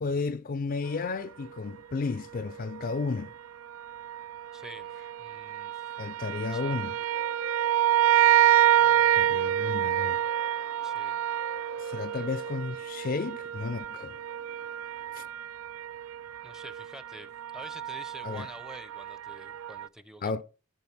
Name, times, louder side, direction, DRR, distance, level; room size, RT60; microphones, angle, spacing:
voice 1, 0.0-3.3 6.0-7.0 9.1-10.2 11.8-14.2 15.2-15.3 18.2-18.5 20.2-20.4, left 4 dB, 45° left, 0.4 m, -33 dB
sound 1, 2.7-3.0 3.7-19.9, right 11 dB, 75° right, 0.4 m, -28 dB
voice 2, 4.5-5.8 6.2-6.8 8.7-9.5 10.8-11.2 16.4-20.4, equal, 5° right, 0.6 m, -48 dB
Bird, 7.0-15.3, left 6 dB, 85° left, 0.6 m, -49 dB
12.5 x 4.6 x 5.9 m
head